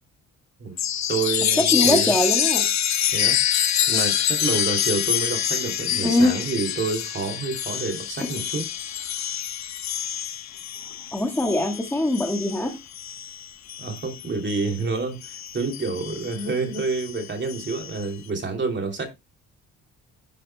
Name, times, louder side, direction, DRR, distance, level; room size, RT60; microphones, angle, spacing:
Chime, 0.8-14.8 15.2-18.0, left 10 dB, 60° left, 1.2 m, -26 dB
voice 1, 1.1-2.1 3.1-3.4 3.9-8.6 13.8-19.1, right 4 dB, 40° right, 3.0 m, -28 dB
voice 2, 1.7-2.6 6.0-6.3 11.1-12.8, left 1 dB, 10° left, 1.7 m, -22 dB
10.5 x 9.0 x 2.2 m
cardioid pair, 90°, 30 cm